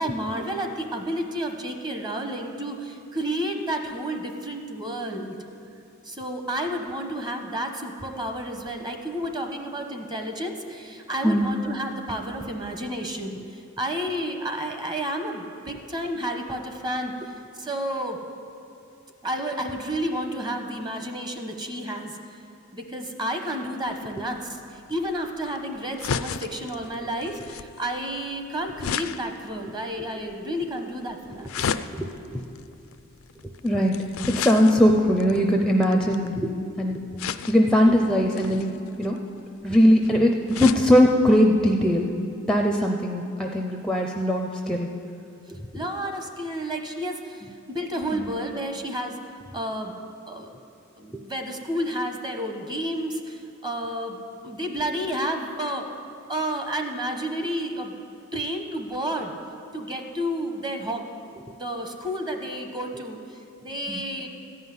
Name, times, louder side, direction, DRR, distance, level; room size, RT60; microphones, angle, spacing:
voice 1, 0.0-5.4 6.0-17.1 17.6-18.2 19.2-22.4 22.7-31.7 45.7-49.2 49.5-49.9 50.3-50.5 51.0-55.9 56.3-57.9 58.3-59.3 59.7-61.1 61.5-64.3, equal, 20° right, 4 dB, 1.0 m, -31 dB
sound 1, 23.9-36.5 37.2-37.8 38.3-40.9 41.3-41.4 41.7-41.8, left 7 dB, 75° left, 0.4 m, -35 dB
voice 2, 31.9-32.4 33.4-36.5 36.8-37.0 37.5-38.7 39.0-39.2 39.6-42.1 42.4-44.9 48.1-48.3 63.9-64.0, equal, 5° left, 2 dB, 0.5 m, -20 dB
14.0 x 5.6 x 9.5 m, 2.6 s
head